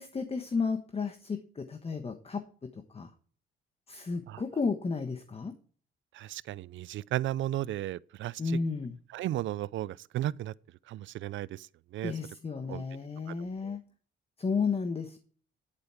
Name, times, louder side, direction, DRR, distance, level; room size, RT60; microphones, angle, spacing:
voice 1, 0.0-3.1 3.9-5.6 8.4-9.0 12.0-13.8 14.4-15.2, left 4 dB, 30° left, 1.3 m, -33 dB
voice 2, 6.1-8.6 9.1-10.5 10.9-11.7 11.9-12.1 12.7-12.8 13.3-13.4 13.6-13.8, right 14 dB, 70° right, 0.5 m, -34 dB
10.0 x 8.5 x 4.5 m
cardioid pair, 90°, 20 cm